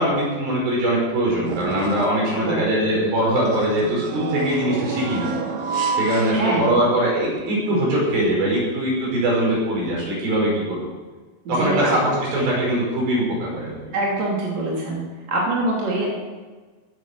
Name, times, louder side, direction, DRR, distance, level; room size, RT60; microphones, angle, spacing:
voice 1, 0.0-5.3 5.9-10.9 11.5-13.8, right 1 dB, 60° right, -4 dB, 7.4 m, -22 dB
sound 1, 1.4-2.3 3.4-7.0 7.4-7.5 8.6-8.7, right 4 dB, 85° right, 1.5 m, -28 dB
voice 2, 6.3-6.7 11.6-11.9 13.9-15.0 15.3-16.0, right 2 dB, 45° right, -4 dB, 3.9 m, -24 dB
16.0 x 10.0 x 6.8 m, 1.3 s
omnidirectional pair, 4.9 m